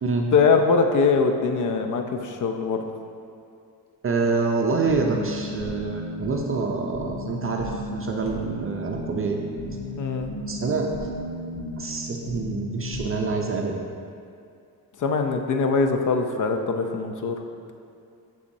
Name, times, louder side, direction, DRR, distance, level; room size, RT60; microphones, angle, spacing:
voice 1, 0.3-2.8 10.0-10.3 15.0-17.3, left 4 dB, 50° left, 5 dB, 0.6 m, -22 dB
voice 2, 4.0-9.4 10.5-10.9 11.8-13.8, right 4 dB, 35° right, 1 dB, 0.4 m, -26 dB
sound 1, 4.7-13.4, left 1 dB, 85° left, 1.1 m, -34 dB
6.9 x 6.2 x 2.6 m, 2.5 s
cardioid pair, 120°, 39 cm